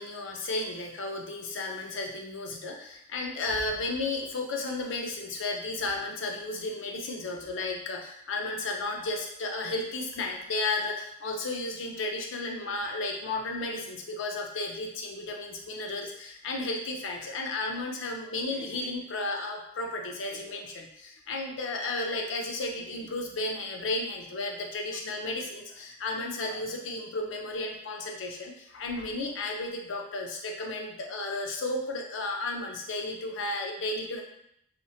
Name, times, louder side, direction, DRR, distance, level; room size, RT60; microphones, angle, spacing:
voice 1, 0.0-34.2, left 2 dB, 85° left, 1 dB, 0.5 m, -33 dB
2.8 x 2.0 x 2.6 m, 0.74 s
head